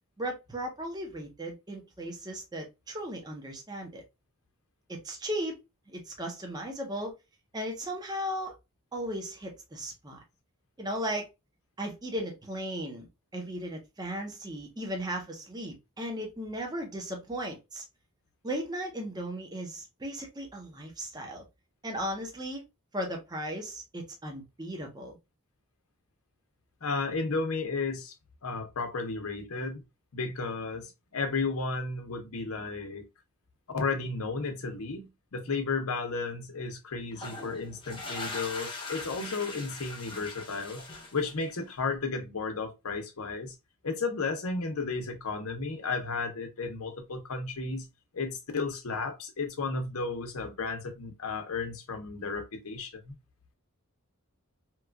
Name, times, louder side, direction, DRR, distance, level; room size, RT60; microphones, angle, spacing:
voice 1, 0.2-4.0 4.9-5.6 5.9-7.1 7.5-8.5 8.9-10.2 10.8-11.3 11.8-13.1 13.3-17.8 18.4-21.5 21.8-22.6 22.9-25.2, equal, 20° right, 0.6 m, -36 dB
voice 2, 26.8-28.1 28.4-29.8 30.1-33.0 33.7-43.5 43.8-47.9 48.1-53.1, left 4 dB, 80° left, 0.7 m, -33 dB
sound 1, 37.1-41.7, left 3 dB, 25° left, 0.6 m, -40 dB
3.0 x 2.3 x 2.2 m
head